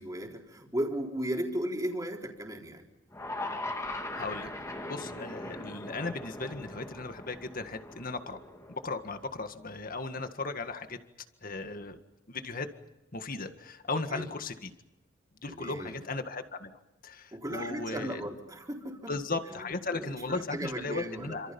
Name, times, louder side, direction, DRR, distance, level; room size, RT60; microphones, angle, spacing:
voice 1, 0.0-2.9 14.1-14.3 15.5-16.0 17.3-19.1 19.4-21.5, right 1 dB, 20° right, 1 dB, 4.1 m, -36 dB
sound 1, 3.1-9.4, left 2 dB, 15° left, 2.6 m, -40 dB
voice 2, 4.2-8.4 8.7-11.0 11.4-12.0 12.3-12.7 13.1-14.7 15.4-16.7 17.0-18.2 19.1-21.5, left 3 dB, 45° left, 8 dB, 1.8 m, -36 dB
28.5 x 27.0 x 5.5 m, 0.96 s
head